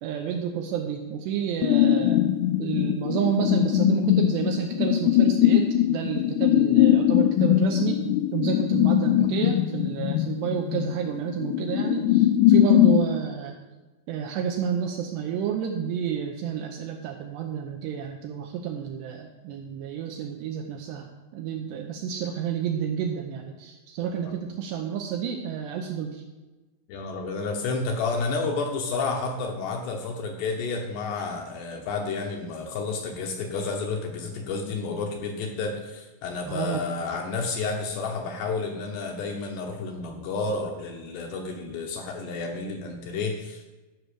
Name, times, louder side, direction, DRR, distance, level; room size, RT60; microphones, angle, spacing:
voice 1, 0.0-2.2 2.6-8.1 8.3-13.6 14.1-26.2 36.5-36.8, right 8 dB, 80° right, 3 dB, 2.6 m, -30 dB
sound 1, 1.6-13.1, left 12 dB, 90° left, 3.2 m, -21 dB
voice 2, 26.9-43.7, left 4 dB, 75° left, 2 dB, 2.7 m, -31 dB
13.0 x 6.0 x 6.6 m, 1.1 s
omnidirectional pair, 5.7 m